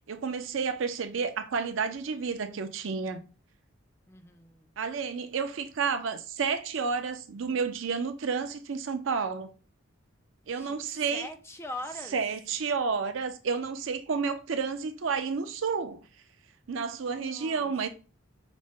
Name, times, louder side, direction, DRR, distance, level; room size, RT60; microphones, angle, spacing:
voice 1, 0.1-3.2 4.8-9.5 10.5-11.3 12.1-16.0 16.7-17.9, right 5 dB, 70° right, 0.5 m, -31 dB
voice 2, 4.1-4.7 10.5-10.8 11.1-12.2 17.1-17.7, left 1 dB, 10° left, 0.3 m, -42 dB
4.9 x 2.1 x 3.5 m
head